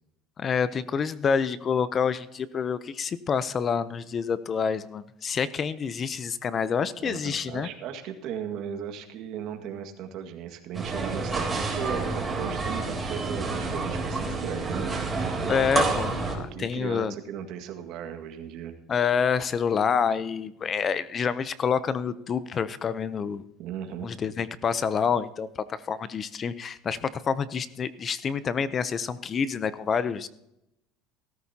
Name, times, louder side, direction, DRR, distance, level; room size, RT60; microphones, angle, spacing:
voice 1, 0.4-7.7 15.5-17.1 18.9-23.4 24.0-30.3, left 6 dB, 35° left, 16 dB, 0.6 m, -27 dB
voice 2, 7.0-14.9 16.4-18.8 23.6-24.1, right 8 dB, 60° right, 5 dB, 1.8 m, -37 dB
sound 1, 10.7-16.4, right 3 dB, 20° right, 3.3 m, -29 dB
17.0 x 14.0 x 2.9 m, 0.84 s
supercardioid pair, 115°, 0 cm